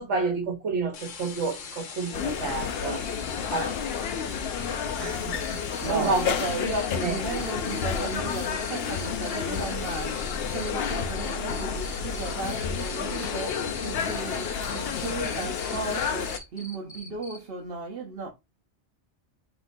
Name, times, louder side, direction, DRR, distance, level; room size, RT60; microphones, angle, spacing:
voice 1, 0.0-3.0 3.5-3.7 5.0-6.3 7.0-7.2, right 4 dB, 70° right, 1.3 m, -29 dB
sound 1, 0.9-16.4, left 6 dB, 85° left, 1.2 m, -40 dB
sound 2, 2.1-16.4, left 6 dB, 65° left, 0.7 m, -31 dB
Cricket, 5.4-17.4, left 1 dB, 30° left, 1.1 m, -44 dB
voice 2, 5.8-18.3, right 3 dB, 55° right, 0.9 m, -35 dB
5.7 x 2.9 x 2.6 m
omnidirectional pair, 1.2 m